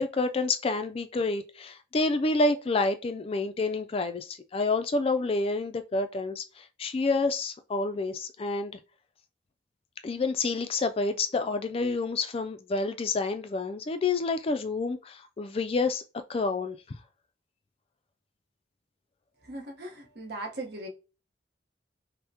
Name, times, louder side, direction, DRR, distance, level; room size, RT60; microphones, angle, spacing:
voice 1, 0.0-8.7 10.0-16.0 16.3-16.8, left 3 dB, 30° left, 0.3 m, -28 dB
voice 2, 19.4-20.9, right 2 dB, 60° right, 1.0 m, -38 dB
5.5 x 2.1 x 2.7 m
head